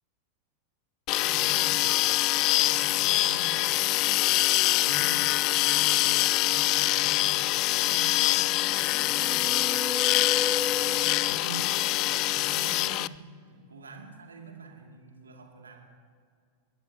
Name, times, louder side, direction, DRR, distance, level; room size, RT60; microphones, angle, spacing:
sound 1, 1.1-13.1, left 18 dB, 40° left, 0.3 m, -24 dB
voice 1, 1.2-2.1 2.6-4.3 4.8-9.7 10.2-15.8, right 2 dB, 75° right, 2 dB, 2.5 m, -45 dB
sound 2, 8.9-11.7, left 3 dB, 15° right, 0.7 m, -35 dB
29.5 x 15.5 x 2.9 m, 2.2 s
figure-of-eight pair, 90°, 0 cm